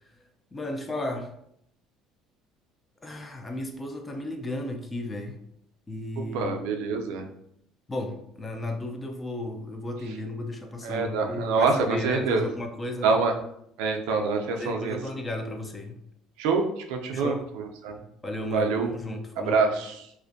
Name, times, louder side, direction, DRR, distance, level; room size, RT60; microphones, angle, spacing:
voice 1, 0.5-1.3 3.0-5.4 5.9-6.7 7.9-13.2 14.5-16.0 17.1-17.5 18.2-19.7, left 1 dB, 15° left, 4 dB, 0.4 m, -34 dB
voice 2, 6.3-7.2 10.8-12.5 13.0-13.3 13.8-15.0 16.4-17.3 17.8-17.9 18.5-18.9 19.5-19.7, right 4 dB, 85° right, 3 dB, 0.4 m, -25 dB
2.4 x 2.1 x 2.5 m, 0.73 s
cardioid pair, 115°, 0 cm